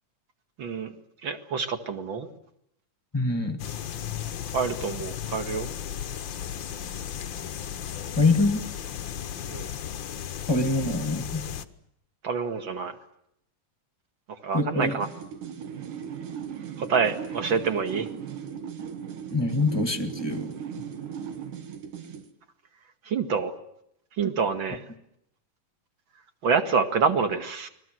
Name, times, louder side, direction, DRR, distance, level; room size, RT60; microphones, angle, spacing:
voice 1, 0.6-0.9 1.2-2.3 4.5-5.7 9.5-9.7 12.2-13.0 14.4-15.1 16.8-18.1 23.1-23.5 24.2-24.8 26.4-27.7, right 5 dB, 40° right, 8 dB, 2.4 m, -27 dB
voice 2, 3.1-3.6 8.2-8.7 10.5-11.4 14.5-15.0 19.3-20.8, left 2 dB, 10° left, 8 dB, 1.4 m, -25 dB
sound 1, 3.6-11.7, left 9 dB, 70° left, 1.1 m, -35 dB
sound 2, 14.8-22.3, right 8 dB, 75° right, 3.4 m, -38 dB
29.5 x 22.0 x 7.9 m, 0.75 s
omnidirectional pair, 3.8 m